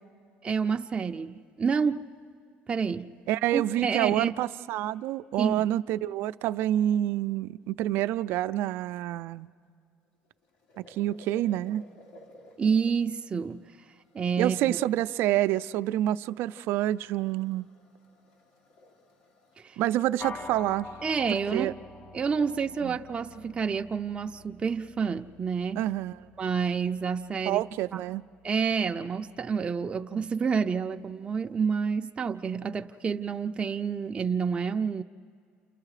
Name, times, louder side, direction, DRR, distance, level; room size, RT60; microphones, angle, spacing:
voice 1, 0.4-2.1 2.7-3.1 3.5-4.3 5.4-5.7 12.6-13.6 14.1-14.8 19.6-19.8 21.0-21.7 22.1-25.8 26.4-27.6 27.9-28.0 28.4-35.0, right 6 dB, 25° right, 0.6 m, -29 dB
voice 2, 3.3-9.5 10.8-11.8 14.4-17.7 19.8-20.9 21.5-21.7 22.8-23.0 25.8-26.2 27.5-28.3, right 13 dB, 70° right, 0.5 m, -27 dB
sound 1, 10.0-19.8, left 1 dB, 75° left, 4.1 m, -57 dB
sound 2, 20.2-29.7, left 3 dB, 35° left, 2.1 m, -48 dB
29.0 x 29.0 x 5.0 m
supercardioid pair, 100°, 4 cm